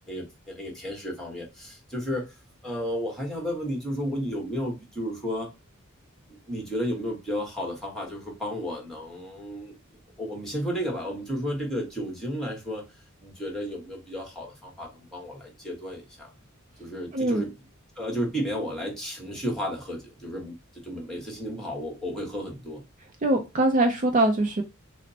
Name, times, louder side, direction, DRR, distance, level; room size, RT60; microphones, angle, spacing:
voice 1, 0.1-2.3 2.6-5.5 6.3-9.7 10.2-12.8 13.2-16.3 16.8-17.5 18.0-22.8, equal, 5° left, 1.3 m, -33 dB
voice 2, 17.1-17.4 23.2-24.6, right 1 dB, 40° right, 0.5 m, -22 dB
6.2 x 2.1 x 2.8 m
head